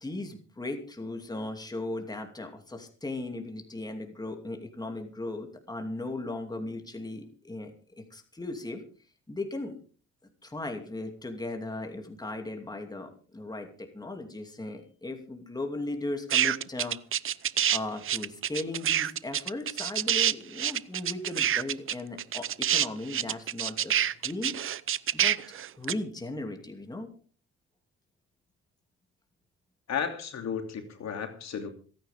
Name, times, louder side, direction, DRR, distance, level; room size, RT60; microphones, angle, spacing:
voice 1, 0.0-7.7 8.0-8.8 9.3-9.8 10.4-17.0 17.7-24.6 25.1-27.1, left 2 dB, 15° left, 4 dB, 2.6 m, -37 dB
sound 1, 16.3-17.8 18.0-25.9, right 10 dB, 45° right, 0.6 m, -27 dB
voice 2, 29.9-31.7, left 7 dB, 60° left, 5 dB, 2.9 m, -33 dB
26.5 x 9.5 x 3.6 m, 0.39 s
cardioid pair, 90°, 30 cm